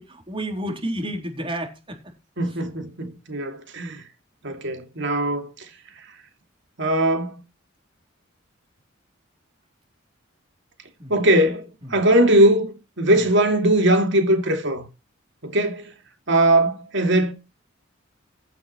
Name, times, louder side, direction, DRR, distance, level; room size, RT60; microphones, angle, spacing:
voice 1, 0.0-2.0 11.0-11.1 11.8-11.9, right 1 dB, 25° right, 4.0 m, -30 dB
voice 2, 2.4-4.0 4.4-5.5 6.8-7.4 11.1-14.9 15.4-15.9 16.3-17.3, right 1 dB, 65° right, 2.6 m, -20 dB
15.5 x 6.9 x 4.6 m
head